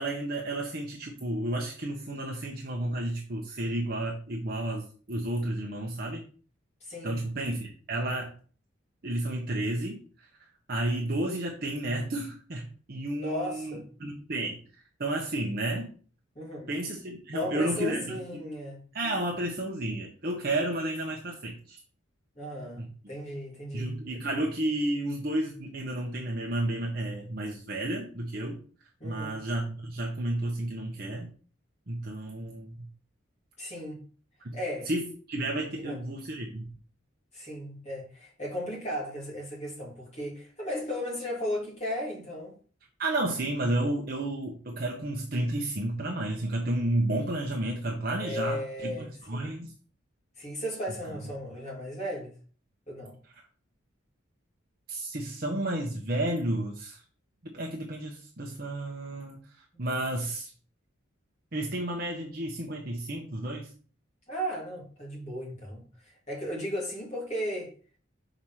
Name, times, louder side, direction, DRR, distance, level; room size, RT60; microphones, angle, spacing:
voice 1, 0.0-6.3 7.0-8.3 9.0-10.3 10.7-14.6 15.0-15.9 16.7-18.2 18.9-21.8 22.8-22.9 23.7-28.6 29.0-31.3 31.9-32.8 34.4-34.6 34.8-36.7 43.0-49.7 54.9-57.0 57.5-59.4 59.8-60.5 61.5-63.7, right 1 dB, 45° right, 1.0 m, -32 dB
voice 2, 6.8-7.2 13.2-13.8 16.3-16.7 17.3-18.8 22.3-23.9 29.0-29.4 33.6-34.0 34.5-34.9 35.7-36.0 37.3-42.5 48.2-49.5 50.4-52.3 52.9-53.2 64.3-67.7, equal, 35° left, 2.9 m, -35 dB
5.1 x 4.7 x 5.8 m
head